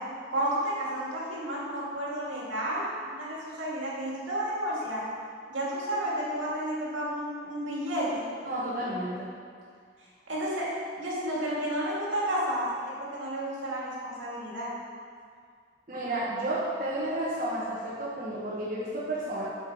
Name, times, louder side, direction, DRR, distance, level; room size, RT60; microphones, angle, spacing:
voice 1, 0.3-5.0 5.5-8.2 10.3-10.7 11.0-14.7, right 1 dB, 80° right, -5 dB, 2.1 m, -31 dB
voice 2, 8.4-9.3 15.9-19.5, right 1 dB, 45° right, -8 dB, 1.2 m, -32 dB
7.7 x 5.4 x 4.7 m, 2.1 s
head